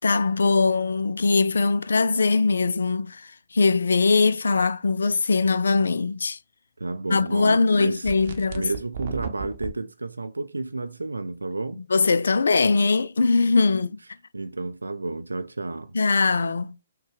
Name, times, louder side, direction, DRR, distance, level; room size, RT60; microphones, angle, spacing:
voice 1, 0.0-6.4 7.1-8.7 11.9-14.0 15.9-16.8, left 4 dB, 65° left, 0.3 m, -21 dB
voice 2, 6.8-8.1 8.5-11.8 14.3-16.0, right 2 dB, 75° right, 0.4 m, -31 dB
sound 1, 8.0-9.7, right 5 dB, 45° right, 0.8 m, -34 dB
6.3 x 2.2 x 3.3 m
figure-of-eight pair, 130°, 0 cm